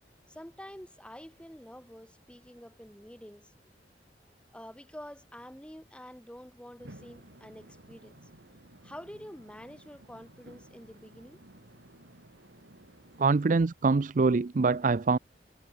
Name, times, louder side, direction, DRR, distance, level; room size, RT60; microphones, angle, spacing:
voice 1, 0.3-3.5 4.5-8.1 8.8-11.4, equal, 5° left, 2.9 m, -48 dB
sound 1, 6.8-13.2, right 1 dB, 80° right, 3.7 m, -54 dB
voice 2, 13.2-15.2, right 4 dB, 45° right, 0.5 m, -24 dB
head